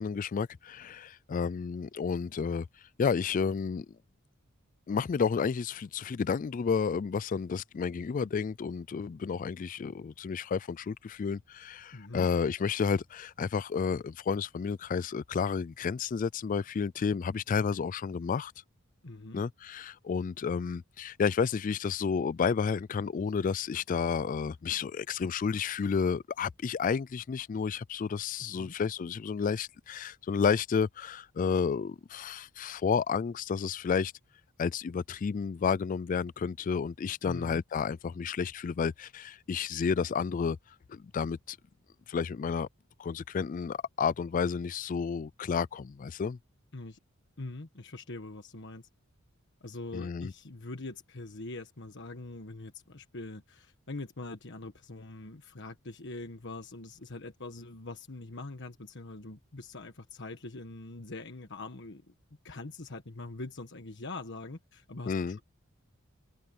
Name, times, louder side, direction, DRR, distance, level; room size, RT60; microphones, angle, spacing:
voice 1, 0.0-2.7 3.0-3.9 4.9-18.5 19.3-34.1 34.6-40.6 40.9-41.6 42.1-42.7 43.0-46.4 49.9-50.3 65.1-65.4, left 6 dB, 40° left, 0.3 m, -31 dB
voice 2, 11.9-12.3 19.0-19.4 28.4-28.7 37.2-37.6 46.7-47.0 47.4-48.9 49.6-62.0 62.4-65.4, left 2 dB, 60° left, 1.4 m, -43 dB
head